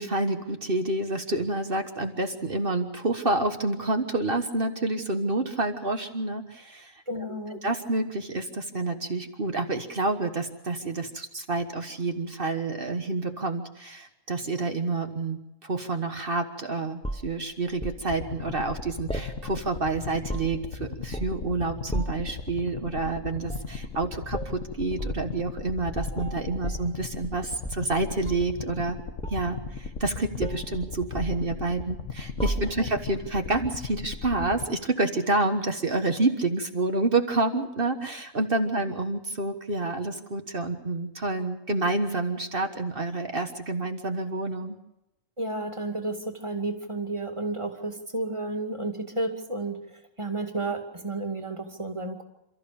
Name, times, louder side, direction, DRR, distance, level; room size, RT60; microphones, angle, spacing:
voice 1, 0.0-7.0 7.3-7.4 7.6-29.0 29.3-44.8, right 2 dB, 45° right, 6 dB, 1.6 m, -28 dB
voice 2, 7.1-7.6 32.8-32.9 45.4-52.2, right 2 dB, 25° right, 5 dB, 2.4 m, -32 dB
sound 1, 17.0-18.0 19.1-19.8 20.1-20.7 21.1-21.5 21.9-22.3 23.4-23.8 24.3-24.6 25.0-25.2 25.9-27.4 27.6-28.6 29.2-30.1 30.4-30.7 31.2-32.0 32.4-33.0 33.9-34.1, right 1 dB, 5° left, 0.9 m, -34 dB
sound 2, 18.1-34.6, left 5 dB, 75° left, 1.7 m, -38 dB
28.5 x 14.0 x 7.0 m, 0.90 s
omnidirectional pair, 1.3 m